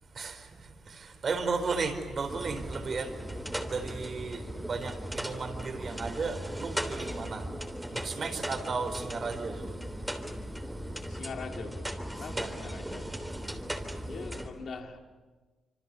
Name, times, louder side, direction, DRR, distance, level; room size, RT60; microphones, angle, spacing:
voice 1, 0.1-7.6 7.9-9.8 12.3-12.5, right 4 dB, 50° right, 4.3 m, -35 dB
sound 1, 2.3-14.5, equal, 5° right, 3.3 m, -37 dB
voice 2, 11.1-13.2 14.0-15.0, left 5 dB, 65° left, 2.4 m, -42 dB
27.0 x 25.5 x 7.0 m
cardioid pair, 75°, 0 cm